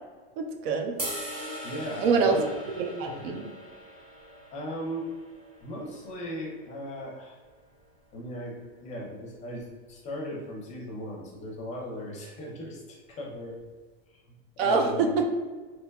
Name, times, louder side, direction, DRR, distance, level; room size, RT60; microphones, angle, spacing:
voice 1, 0.4-0.9 2.0-2.5 2.8-3.4 14.6-15.3, right 4 dB, 70° right, 3 dB, 0.5 m, -25 dB
sound 1, 1.0-7.2, equal, 20° right, 0.7 m, -41 dB
voice 2, 1.6-2.5 3.0-3.4 4.5-5.1 5.6-7.4 8.1-13.6 14.6-15.1, equal, 25° left, -2 dB, 0.5 m, -37 dB
2.9 x 2.2 x 2.3 m, 1.4 s
supercardioid pair, 150°, 30 cm